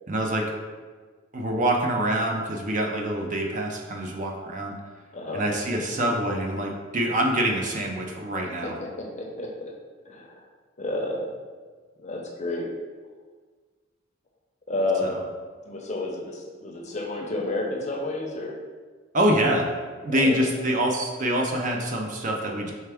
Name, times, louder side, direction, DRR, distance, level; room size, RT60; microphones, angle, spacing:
voice 1, 0.1-0.4 1.3-4.7 5.3-8.8 15.0-15.1 19.1-19.7 20.0-22.7, right 1 dB, 40° right, 1 dB, 0.5 m, -25 dB
voice 2, 5.1-5.5 8.6-9.7 10.1-10.4 10.8-11.3 12.0-12.7 14.7-15.3 15.7-18.5 20.1-20.7, left 2 dB, 35° left, 0 dB, 0.6 m, -30 dB
4.6 x 3.3 x 3.4 m, 1.5 s
head